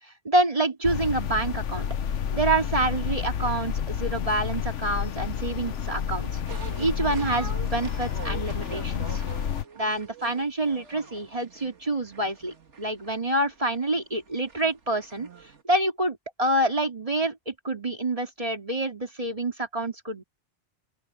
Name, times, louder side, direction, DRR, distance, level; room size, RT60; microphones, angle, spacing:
voice 1, 0.0-1.9 2.3-6.4 6.8-9.2 9.7-20.2, right 2 dB, 30° right, 2.7 m, -27 dB
sound 1, 0.8-9.6, left 8 dB, 90° left, 1.2 m, -30 dB
sound 2, 6.5-15.6, right 6 dB, 80° right, 2.0 m, -44 dB
open air
omnidirectional pair, 1.2 m